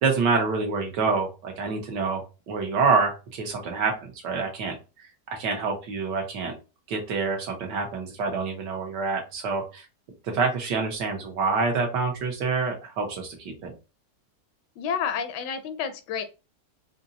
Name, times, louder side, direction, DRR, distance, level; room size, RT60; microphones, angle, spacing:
voice 1, 0.0-4.8 5.3-6.5 6.9-9.8 10.2-13.7, right 4 dB, 75° right, 2 dB, 1.6 m, -27 dB
voice 2, 14.8-16.2, left 7 dB, 75° left, 10 dB, 1.2 m, -30 dB
4.4 x 2.9 x 2.6 m, 0.30 s
omnidirectional pair, 1.9 m